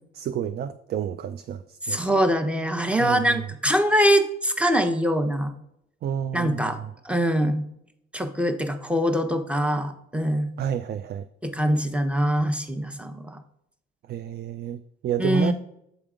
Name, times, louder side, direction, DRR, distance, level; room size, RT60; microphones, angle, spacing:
voice 1, 0.1-2.0 3.0-3.4 6.0-6.9 10.6-11.3 14.1-15.5, right 9 dB, 55° right, 0.4 m, -30 dB
voice 2, 1.8-5.5 6.3-6.8 7.0-7.6 8.1-10.6 11.4-13.4 15.2-15.5, equal, 5° right, 0.8 m, -23 dB
8.0 x 3.6 x 4.9 m
cardioid pair, 90°, 20 cm